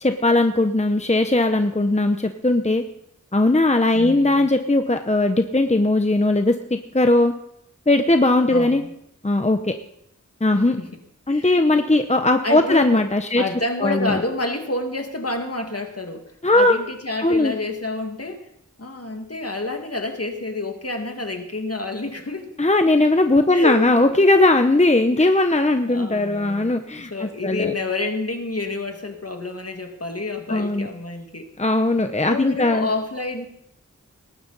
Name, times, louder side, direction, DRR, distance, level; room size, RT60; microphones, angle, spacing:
voice 1, 0.0-2.8 3.3-7.3 7.9-8.8 9.2-9.7 10.4-10.8 11.3-13.4 13.8-14.2 16.4-16.8 17.2-17.5 22.6-27.7 30.5-30.9 31.6-32.9, left 2 dB, 20° left, 7 dB, 0.9 m, -19 dB
voice 2, 3.9-4.5 8.5-8.9 10.8-10.9 11.3-11.6 12.4-13.1 13.4-18.5 18.8-22.5 23.5-24.0 25.1-25.4 25.9-31.5 32.3-33.5, left 2 dB, 50° left, 4 dB, 2.1 m, -29 dB
19.5 x 11.0 x 4.1 m, 0.74 s
wide cardioid pair, 40°, 31 cm